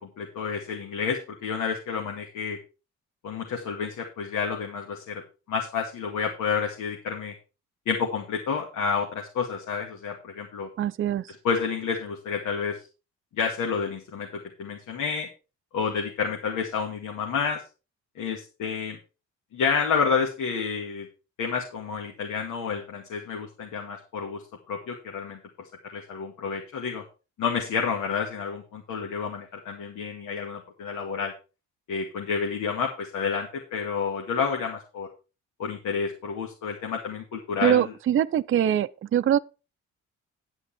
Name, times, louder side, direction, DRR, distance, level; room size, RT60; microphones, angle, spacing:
voice 1, 0.0-2.6 3.2-5.2 5.5-7.3 7.9-10.7 11.4-12.8 13.3-15.3 15.7-17.6 18.2-19.0 19.5-21.1 21.4-24.4 24.7-25.4 25.9-27.0 27.4-31.3 31.9-35.1 35.6-37.9, left 6 dB, 75° left, 2.0 m, -29 dB
voice 2, 10.8-11.3 37.6-39.4, right 10 dB, 45° right, 0.5 m, -23 dB
9.9 x 8.2 x 4.2 m
cardioid pair, 90°, 30 cm